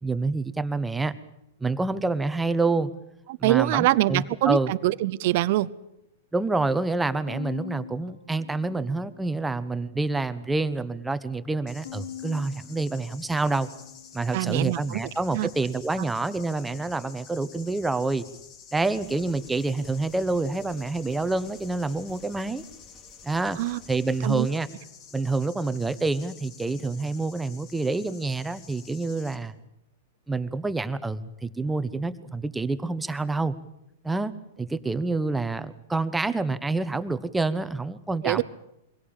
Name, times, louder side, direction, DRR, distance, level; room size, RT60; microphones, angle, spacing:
voice 1, 0.0-1.1 1.6-2.9 3.4-4.7 6.3-13.7 14.1-18.3 18.7-22.6 23.2-23.6 23.9-24.7 25.1-29.6 30.3-33.5 34.0-34.3 34.6-38.4, right 3 dB, 10° right, 12 dB, 1.1 m, -27 dB
voice 2, 3.4-5.7 14.3-15.0 15.3-15.5 23.6-23.8 24.2-24.5 38.2-38.4, right 17 dB, 55° right, 16 dB, 0.8 m, -24 dB
Bowed string instrument, 7.3-9.6 10.1-10.9 11.8-14.4, left 9 dB, 85° left, 4.8 m, -44 dB
sound 1, 11.7-29.3, left 7 dB, 40° left, 2.5 m, -50 dB
sound 2, 18.9-24.3, right 1 dB, 15° left, 4.3 m, -56 dB
23.0 x 17.5 x 8.9 m, 0.85 s
hypercardioid pair, 125°, 0 cm